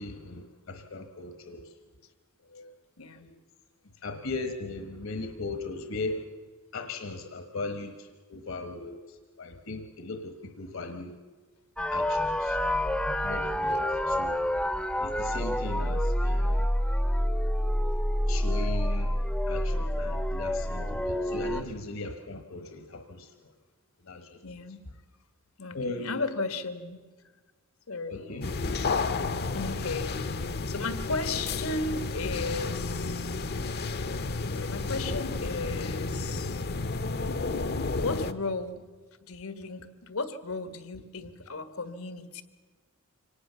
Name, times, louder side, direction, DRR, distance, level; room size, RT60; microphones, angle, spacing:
voice 1, 0.0-1.7 2.5-2.7 3.2-3.4 4.0-6.2 6.7-11.1 11.9-12.6 13.2-14.4 15.0-16.7 18.3-19.1 19.5-23.3 24.0-24.4 25.7-26.2 28.1-28.4, left 2 dB, 70° left, 7 dB, 1.3 m, -38 dB
voice 2, 3.0-3.3 8.3-8.4 13.6-13.7 24.4-24.8 25.6-27.0 27.9-28.5 29.5-33.4 34.5-36.6 38.0-38.9 39.2-42.4, left 3 dB, 85° left, 11 dB, 1.6 m, -35 dB
sound 1, 11.8-21.6, equal, 5° left, 0.7 m, -28 dB
sound 2, 28.4-38.3, left 3 dB, 50° left, 0.7 m, -31 dB
25.0 x 18.5 x 6.8 m, 1.4 s
head